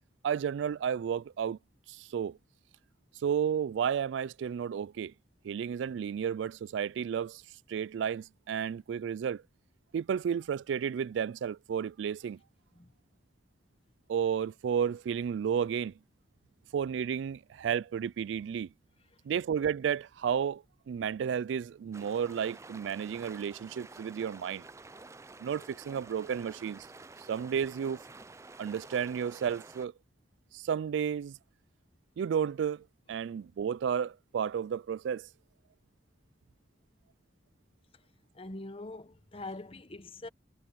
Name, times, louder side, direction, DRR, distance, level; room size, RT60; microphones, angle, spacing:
voice 1, 0.2-1.6 1.9-2.4 3.2-5.1 5.4-7.4 7.7-9.4 9.9-12.4 14.1-15.9 16.7-18.7 19.2-24.6 25.4-26.9 27.3-28.0 28.6-29.9 30.5-31.4 32.2-35.3, right 7 dB, 85° right, 0.3 m, -32 dB
sound 1, 21.9-29.9, right 3 dB, 15° right, 0.5 m, -50 dB
voice 2, 38.3-40.3, left 2 dB, 30° left, 1.0 m, -43 dB
head